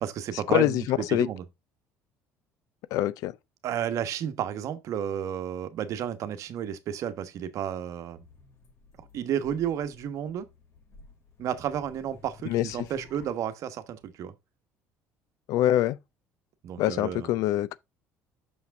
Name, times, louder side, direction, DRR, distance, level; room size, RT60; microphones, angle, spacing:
voice 1, 0.0-1.4 3.6-8.3 9.0-10.5 11.4-14.3 16.6-17.3, right 9 dB, 60° right, 1.1 m, -32 dB
voice 2, 0.5-1.3 2.9-3.4 12.5-12.9 15.5-16.0 16.8-17.8, left 14 dB, 70° left, 0.5 m, -25 dB
sound 1, 8.1-13.3, left 3 dB, 50° left, 2.0 m, -54 dB
6.3 x 5.8 x 3.5 m
supercardioid pair, 95°, 6 cm